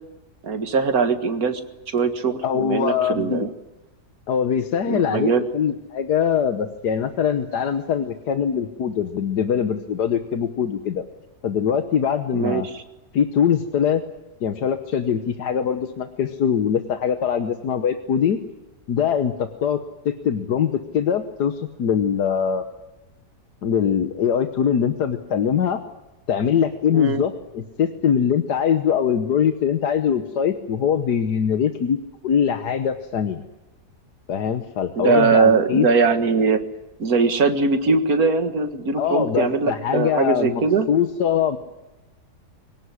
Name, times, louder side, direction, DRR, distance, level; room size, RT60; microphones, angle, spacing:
voice 1, 0.4-1.6 1.9-3.5 4.9-5.4 12.3-12.7 26.9-27.2 35.0-36.6 37.0-40.9, right 4 dB, 60° right, 7 dB, 2.2 m, -21 dB
voice 2, 2.4-3.5 4.3-11.0 11.4-12.7 13.1-14.0 14.4-18.4 18.9-22.6 23.6-25.8 26.3-32.0 32.2-33.4 34.3-35.9 39.0-40.6 40.9-41.6, left 8 dB, 80° left, 7 dB, 1.7 m, -22 dB
24.0 x 17.5 x 9.9 m, 1.0 s
omnidirectional pair, 1.7 m